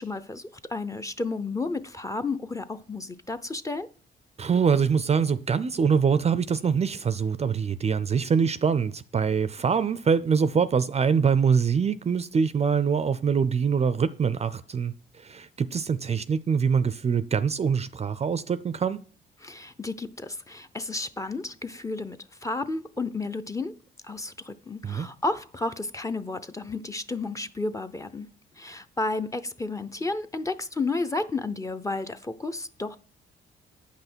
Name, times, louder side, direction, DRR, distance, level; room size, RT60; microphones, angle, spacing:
voice 1, 0.0-3.9 19.4-22.2 22.4-23.7 24.0-28.3 28.6-33.0, left 3 dB, 15° left, 0.6 m, -32 dB
voice 2, 4.4-19.0 24.8-25.1, right 6 dB, 30° right, 0.4 m, -24 dB
8.5 x 5.7 x 6.1 m
cardioid pair, 90°, 20 cm